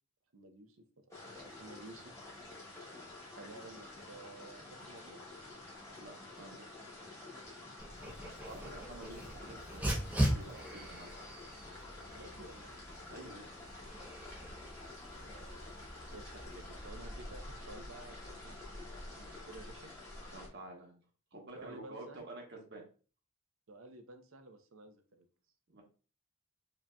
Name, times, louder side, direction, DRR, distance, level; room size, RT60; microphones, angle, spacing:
voice 1, 0.3-0.8 1.3-2.1 3.3-5.2 12.1-12.7 15.2-15.8 16.1-18.5 18.9-19.9 21.5-22.2 23.7-25.3, right 2 dB, 80° right, 7 dB, 0.6 m, -53 dB
sound 1, 1.1-20.5, left 2 dB, 15° left, 1.1 m, -49 dB
voice 2, 6.0-6.6 8.5-11.3 13.1-13.4 20.3-21.0 21.3-22.8 25.7-25.8, right 2 dB, 55° right, 1 dB, 1.1 m, -50 dB
Dog, 7.8-16.9, right 1 dB, 5° right, 0.6 m, -40 dB
5.1 x 2.7 x 2.2 m, 0.37 s
head